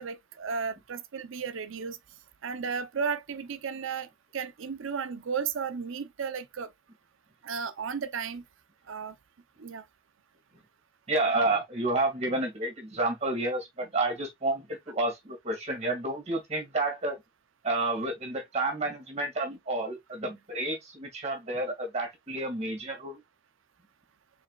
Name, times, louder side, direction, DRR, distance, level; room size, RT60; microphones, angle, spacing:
voice 1, 0.0-2.0 2.4-6.7 7.4-8.4 8.9-9.1 9.6-9.8, right 6 dB, 70° right, 0.6 m, -34 dB
voice 2, 11.1-17.2 17.6-23.2, right 2 dB, 30° right, 1.9 m, -30 dB
4.8 x 4.1 x 2.3 m
head